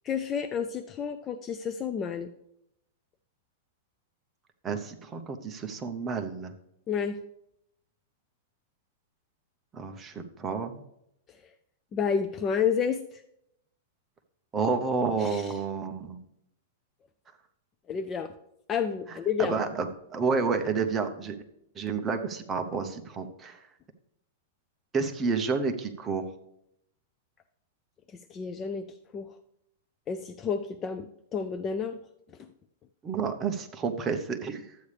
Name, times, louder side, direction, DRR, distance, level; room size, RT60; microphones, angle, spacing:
voice 1, 0.0-2.3 6.9-7.2 11.9-13.0 15.2-15.5 17.9-18.3 18.7-19.5 28.3-28.9 29.1-29.3 30.1-32.0, left 7 dB, 20° left, 9 dB, 0.3 m, -30 dB
voice 2, 4.6-6.5 9.7-10.8 14.5-16.2 19.4-21.4 21.8-23.6 24.9-26.3 33.0-34.6, right 5 dB, 15° right, 5 dB, 0.7 m, -30 dB
12.5 x 8.3 x 3.3 m, 0.77 s
supercardioid pair, 165°, 0 cm